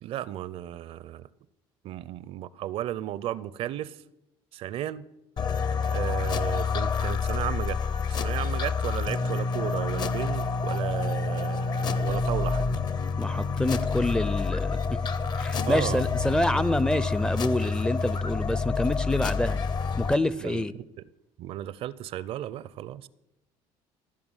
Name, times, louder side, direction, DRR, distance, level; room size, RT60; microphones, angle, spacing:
voice 1, 0.0-1.3 1.8-4.0 4.5-5.0 5.9-7.8 8.1-12.7 15.7-16.0 20.4-20.6 21.4-23.1, right 12 dB, 60° right, 0.5 m, -34 dB
sound 1, 5.4-20.1, left 4 dB, 40° left, 0.7 m, -28 dB
voice 2, 13.2-15.0 15.4-19.6 20.0-20.7, left 1 dB, 5° left, 0.4 m, -27 dB
15.0 x 5.9 x 8.8 m
cardioid pair, 125°, 11 cm